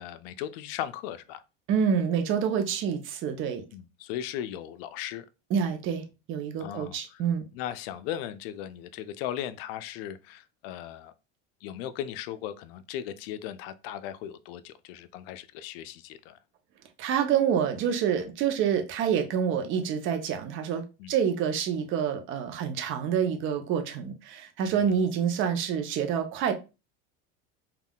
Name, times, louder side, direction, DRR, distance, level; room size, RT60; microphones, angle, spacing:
voice 1, 0.0-1.4 3.7-5.2 6.6-7.2 7.5-11.1 11.6-16.4 21.0-21.1 24.7-25.0, left 11 dB, 75° left, 0.5 m, -37 dB
voice 2, 1.7-3.6 5.5-7.5 17.0-26.5, right 7 dB, 45° right, 0.6 m, -27 dB
3.5 x 2.3 x 2.2 m
supercardioid pair, 135°, 29 cm